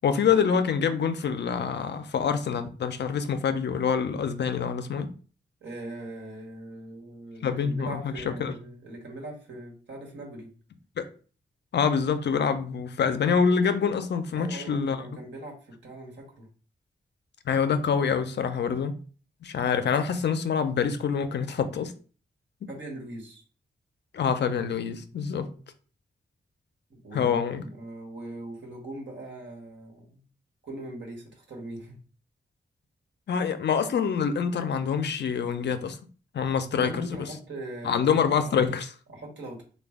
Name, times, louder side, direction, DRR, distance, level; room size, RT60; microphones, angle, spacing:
voice 1, 0.0-5.1 7.4-8.5 11.0-11.1 11.7-15.0 17.5-19.0 19.4-21.9 22.6-22.7 24.1-25.5 27.1-27.6 33.3-36.0 36.3-37.3 37.8-38.9, left 6 dB, 65° left, 0.4 m, -26 dB
voice 2, 5.6-10.5 14.3-16.5 22.7-23.4 26.9-30.2 30.6-32.0 36.8-38.7 39.1-39.6, right 1 dB, 80° right, 1.2 m, -41 dB
3.2 x 2.2 x 3.5 m
cardioid pair, 50°, 19 cm